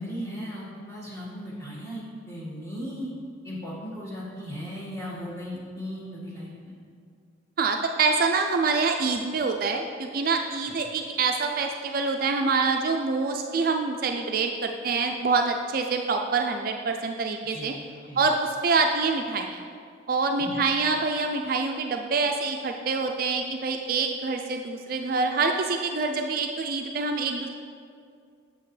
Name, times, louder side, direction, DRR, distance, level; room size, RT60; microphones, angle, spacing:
voice 1, 0.0-3.1 3.4-6.7 17.5-17.7 18.1-18.2 20.4-20.6, equal, 15° left, -7 dB, 1.7 m, -37 dB
voice 2, 7.6-17.7 18.2-19.6 20.1-27.5, right 4 dB, 50° right, 4 dB, 0.4 m, -26 dB
7.9 x 6.9 x 3.2 m, 2.2 s
head